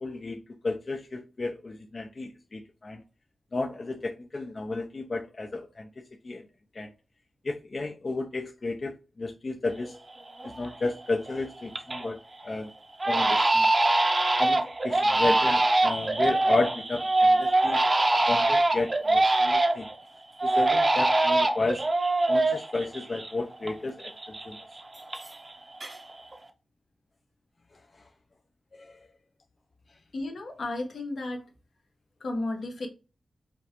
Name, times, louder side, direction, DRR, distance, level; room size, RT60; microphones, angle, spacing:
voice 1, 0.0-3.0 3.5-6.5 6.7-6.9 7.4-8.9 9.2-10.0 10.4-12.7 13.1-13.7 14.4-17.8 18.3-19.9 20.4-21.8 22.3-24.6 28.8-29.0, left 3 dB, 50° left, 0.5 m, -32 dB
Crying sobbing, 9.8-9.9 10.4-10.9 11.3-12.1 12.4-12.6 13.0-19.9 20.4-23.7 24.0-25.5 25.8-26.3, right 2 dB, 35° right, 0.6 m, -24 dB
voice 2, 30.1-31.5 32.2-32.9, left 2 dB, 80° left, 1.1 m, -33 dB
5.1 x 2.4 x 2.9 m
wide cardioid pair, 90°, 0 cm